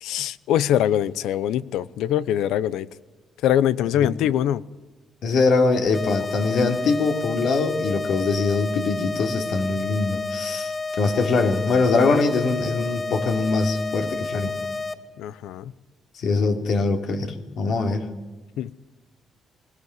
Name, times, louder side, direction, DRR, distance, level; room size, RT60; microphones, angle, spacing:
voice 1, 0.0-2.9 3.4-4.7 15.2-15.7 18.6-18.7, left 11 dB, 90° left, 0.8 m, -23 dB
voice 2, 5.2-14.5 16.1-18.0, left 3 dB, 70° left, 3.2 m, -22 dB
sound 1, 5.9-14.9, left 3 dB, 35° left, 2.6 m, -30 dB
21.0 x 18.5 x 9.7 m
cardioid pair, 90°, 0 cm